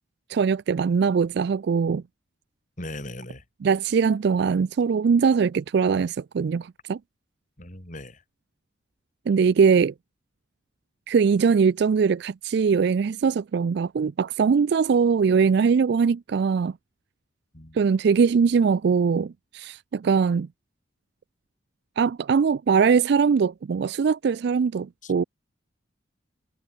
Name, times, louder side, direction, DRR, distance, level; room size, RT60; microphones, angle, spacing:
voice 1, 0.3-2.0 3.6-7.0 9.3-9.9 11.1-16.7 17.7-20.5 22.0-25.2, right 6 dB, 60° right, 0.3 m, -21 dB
voice 2, 2.8-3.4 7.6-8.2 17.5-17.8 25.0-25.1, left 1 dB, 40° left, 4.1 m, -38 dB
head